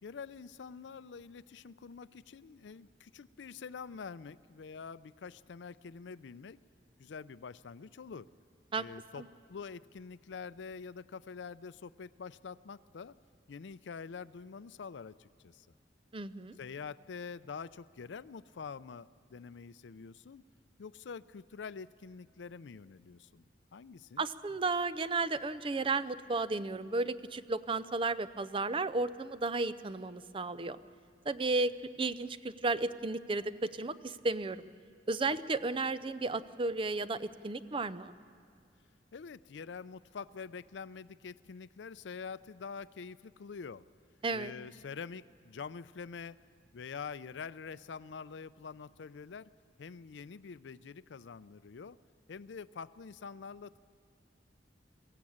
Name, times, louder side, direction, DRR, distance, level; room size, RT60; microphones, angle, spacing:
voice 1, 0.0-6.6 7.0-8.3 8.8-13.1 13.5-15.7 16.6-20.4 20.8-23.4 23.7-24.3 39.1-43.8 44.3-46.4 46.7-49.5 49.8-52.0 52.3-53.8, left 5 dB, 80° left, 17 dB, 0.5 m, -46 dB
voice 2, 16.1-16.6 24.2-30.8 31.3-34.7 35.1-38.1 44.2-44.5, right 3 dB, 30° right, 14 dB, 0.5 m, -33 dB
22.5 x 14.5 x 8.6 m, 2.2 s
head